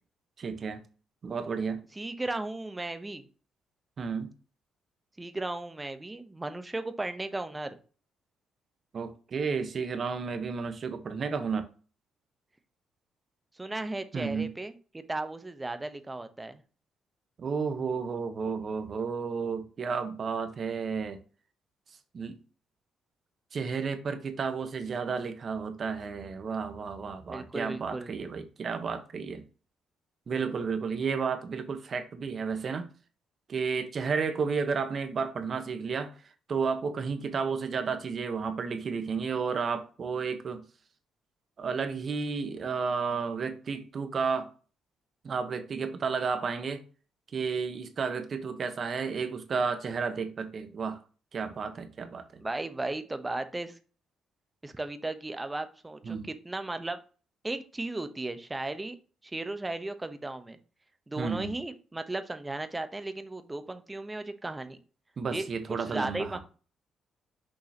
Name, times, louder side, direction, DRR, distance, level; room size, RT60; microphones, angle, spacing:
voice 1, 0.4-0.8 1.2-1.8 4.0-4.3 8.9-11.7 14.1-14.5 17.4-21.2 22.1-22.4 23.5-29.4 30.3-32.9 33.5-36.1 36.5-40.6 41.6-44.5 45.2-46.8 47.3-51.0 51.3-52.4 56.0-56.3 61.2-61.5 65.2-66.4, right 5 dB, 50° right, 1.2 m, -32 dB
voice 2, 1.9-3.3 5.2-7.8 13.6-16.6 27.3-28.1 52.4-53.8 54.6-57.0 57.4-59.0 59.2-60.6 61.1-64.8 65.3-66.4, right 2 dB, 15° right, 1.0 m, -36 dB
6.6 x 5.4 x 2.9 m
cardioid pair, 90°, 0 cm